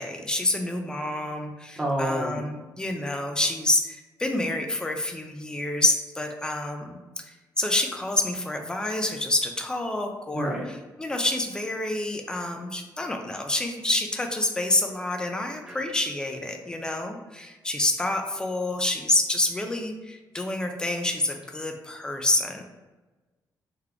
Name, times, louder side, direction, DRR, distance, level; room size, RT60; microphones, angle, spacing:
voice 1, 0.0-22.6, left 2 dB, 10° left, 4 dB, 0.5 m, -28 dB
voice 2, 1.8-2.4 10.3-10.6 15.7-15.8, right 1 dB, 10° right, -4 dB, 0.9 m, -28 dB
3.7 x 3.4 x 3.4 m, 1.2 s
wide cardioid pair, 165°, 7 cm